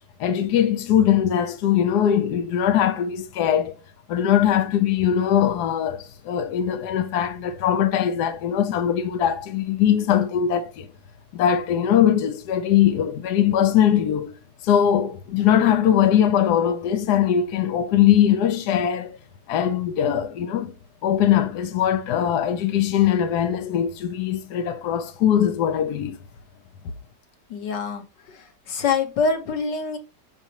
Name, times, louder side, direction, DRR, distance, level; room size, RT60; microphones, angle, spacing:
voice 1, 0.2-3.7 4.1-10.9 11.3-14.3 14.6-19.2 19.5-20.7 21.0-26.2, left 10 dB, 70° left, 1.3 m, -21 dB
voice 2, 27.5-28.0 28.7-30.0, left 5 dB, 90° left, 1.8 m, -24 dB
6.0 x 5.6 x 2.9 m
omnidirectional pair, 1.8 m